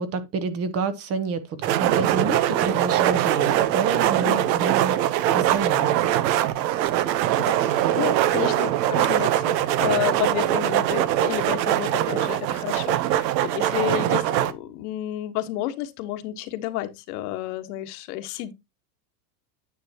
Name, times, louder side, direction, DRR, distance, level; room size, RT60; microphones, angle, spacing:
voice 1, 0.0-5.9, right 4 dB, 30° right, 0.9 m, -29 dB
sound 1, 1.6-14.5, right 12 dB, 80° right, 1.0 m, -22 dB
voice 2, 7.4-18.5, left 14 dB, 60° left, 1.3 m, -31 dB
9.6 x 7.2 x 2.8 m
supercardioid pair, 145°, 50 cm